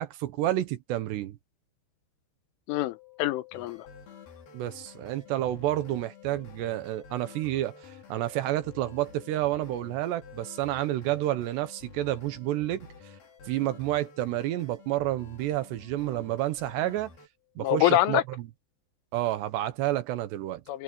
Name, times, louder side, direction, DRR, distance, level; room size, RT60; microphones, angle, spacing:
voice 1, 0.0-1.4 4.5-12.9 13.4-17.1 17.6-18.5 19.1-20.6, right 14 dB, 75° right, 2.9 m, -30 dB
voice 2, 2.7-3.9 17.6-18.2 20.7-20.8, left 15 dB, 85° left, 3.6 m, -25 dB
sound 1, 2.7-17.6 17.9-18.0, left 25 dB, 70° left, 8.5 m, -56 dB
sound 2, 3.5-17.3, left 5 dB, 50° left, 6.0 m, -51 dB
omnidirectional pair, 5.5 m